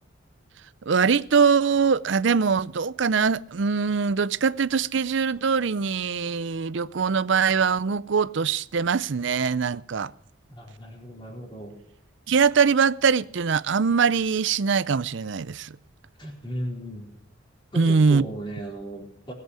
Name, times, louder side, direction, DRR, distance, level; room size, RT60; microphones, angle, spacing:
voice 1, 0.9-10.1 12.3-15.8 17.8-18.2, right 5 dB, 65° right, 0.5 m, -22 dB
voice 2, 10.5-11.8 16.2-17.1 17.7-19.3, right 1 dB, 25° left, 4.3 m, -36 dB
20.5 x 8.2 x 6.4 m
head